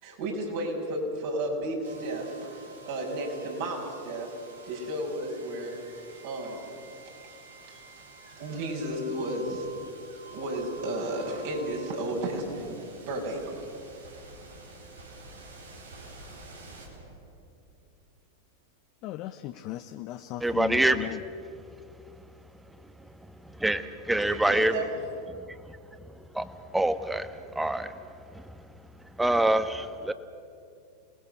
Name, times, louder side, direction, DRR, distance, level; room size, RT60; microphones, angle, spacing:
voice 1, 0.0-4.4 4.6-5.8 6.2-6.8 7.7-7.8 8.4-9.7 10.3-13.5 24.1-25.0, right 1 dB, 60° right, 0 dB, 6.5 m, -33 dB
sound 1, 1.8-17.7, right 2 dB, 85° right, 3.9 m, -48 dB
voice 2, 19.0-21.2, left 15 dB, 50° left, 8 dB, 0.9 m, -37 dB
voice 3, 20.4-21.1 23.4-24.7 26.4-26.5 26.7-28.0 28.3-28.4 29.2-30.1, right 1 dB, 5° right, 11 dB, 1.3 m, -25 dB
27.5 x 19.5 x 6.8 m, 2.5 s
hypercardioid pair, 95°, 0 cm